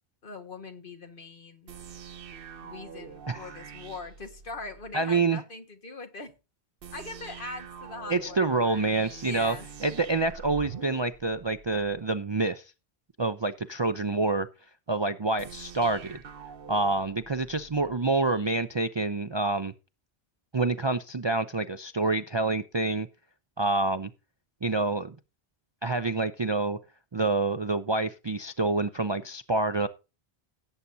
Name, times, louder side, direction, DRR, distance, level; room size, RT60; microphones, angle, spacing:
voice 1, 0.2-1.7 2.6-6.4 6.9-8.5 9.2-9.7, left 3 dB, 55° left, 1.7 m, -41 dB
sound 1, 1.7-5.0 6.8-12.0 15.4-18.0, right 6 dB, 60° right, 1.0 m, -45 dB
voice 2, 4.9-5.4 8.1-9.5 9.8-12.6 13.2-14.5 14.9-16.2 16.7-19.7 20.5-23.1 23.6-24.1 24.6-25.2 25.8-26.8 27.1-29.9, right 3 dB, 35° right, 0.5 m, -27 dB
17.0 x 8.2 x 2.7 m
omnidirectional pair, 1.1 m